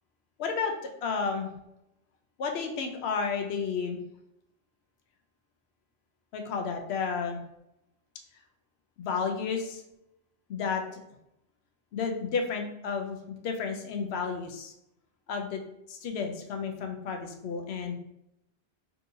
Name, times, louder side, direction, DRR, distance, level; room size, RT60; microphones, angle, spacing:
voice 1, 0.4-0.7 1.0-1.5 2.4-4.0 6.3-7.4 9.0-9.8 10.5-10.8 11.9-14.7 15.3-15.6 15.9-18.0, left 5 dB, 80° left, 4 dB, 0.8 m, -32 dB
3.6 x 2.8 x 2.6 m, 0.81 s
omnidirectional pair, 1.1 m